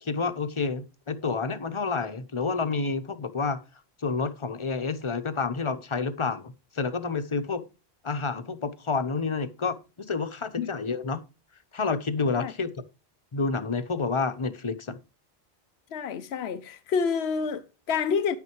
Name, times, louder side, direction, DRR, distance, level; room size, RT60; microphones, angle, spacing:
voice 1, 0.0-3.6 4.0-7.6 8.0-11.2 11.7-12.7 13.3-15.0, left 4 dB, 30° left, 0.9 m, -29 dB
voice 2, 15.9-18.4, left 6 dB, 80° left, 1.0 m, -28 dB
10.0 x 9.4 x 3.1 m
omnidirectional pair, 1.1 m